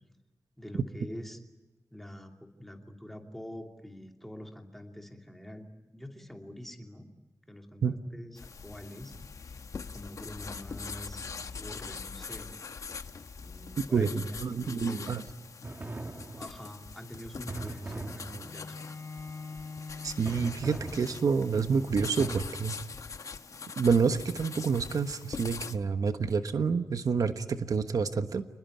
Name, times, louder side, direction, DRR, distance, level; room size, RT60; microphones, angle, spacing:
voice 1, 0.6-1.4 1.9-7.1 7.5-9.1 9.9-12.5 13.3-15.3 16.4-18.9, equal, 5° left, 3 dB, 2.8 m, -45 dB
sound 1, 8.4-25.8, left 5 dB, 60° left, 1.1 m, -43 dB
voice 2, 13.9-15.2 20.0-22.8 23.8-28.4, right 5 dB, 70° right, 9 dB, 1.2 m, -28 dB
sound 2, 15.6-16.8 17.5-18.9 20.3-21.6 22.2-22.4, right 2 dB, 30° right, 1.4 m, -40 dB
Bowed string instrument, 18.4-23.7, left 4 dB, 35° left, 3.7 m, -46 dB
28.5 x 20.5 x 9.5 m, 1.1 s
wide cardioid pair, 140°, 6 cm